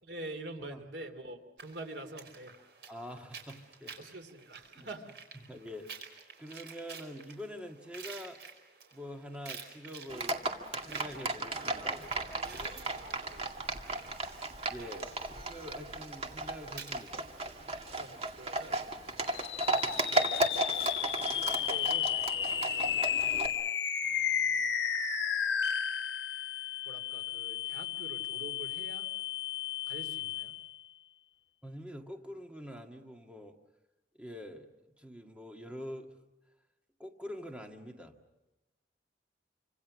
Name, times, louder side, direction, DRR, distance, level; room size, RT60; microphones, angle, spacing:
voice 1, 0.0-2.6 4.0-5.2 12.6-13.8 17.9-18.8 19.0-20.5 20.8-22.2 24.0-24.7 26.8-29.1 29.9-30.6, right 2 dB, 90° right, 7 dB, 2.9 m, -47 dB
sound 1, 1.6-18.3, right 5 dB, 70° right, 4.8 m, -51 dB
voice 2, 2.9-4.1 4.8-4.9 5.5-6.1 6.4-8.4 8.9-10.4 10.9-12.1 14.7-15.1 15.5-17.3 31.6-33.6 34.2-34.7 35.0-36.1 37.0-38.1, equal, 5° right, 3 dB, 1.8 m, -45 dB
Livestock farm animals working animals, 10.1-23.5, right 2 dB, 35° right, 2.2 m, -35 dB
sound 2, 19.3-30.8, left 8 dB, 85° left, 1.1 m, -33 dB
28.0 x 26.0 x 6.3 m, 1.0 s
head